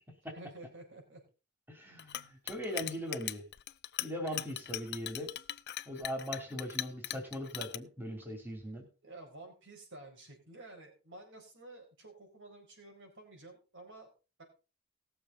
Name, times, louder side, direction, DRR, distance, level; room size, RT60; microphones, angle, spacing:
voice 1, 0.3-1.2 9.0-14.1 14.4-14.5, right 2 dB, 55° right, 3 dB, 4.5 m, -51 dB
voice 2, 1.7-3.4 4.0-5.3 5.9-8.8, equal, 10° right, 1 dB, 2.8 m, -40 dB
Chink clink, 2.0-7.8, left 13 dB, 45° left, 0.5 m, -39 dB
19.0 x 7.0 x 3.8 m, 0.32 s
head